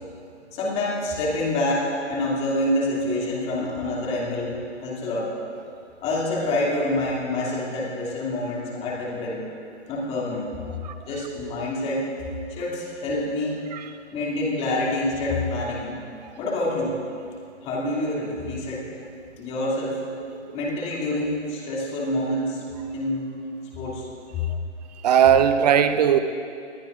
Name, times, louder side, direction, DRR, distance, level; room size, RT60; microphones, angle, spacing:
voice 1, 0.5-5.3 6.0-9.4 9.9-10.5 11.1-12.1 12.5-13.6 14.1-16.0 16.4-17.0 17.6-18.9 19.4-20.1 20.5-22.6 22.9-23.4 23.8-24.1 24.3-24.4, left 1 dB, 15° left, -4 dB, 2.7 m, -27 dB
voice 2, 10.8-11.3 13.7-13.9 20.3-20.6 24.5-24.6 24.9-26.2, right 9 dB, 35° right, 9 dB, 0.9 m, -20 dB
26.5 x 21.0 x 2.6 m, 2.4 s
figure-of-eight pair, 140°, 36 cm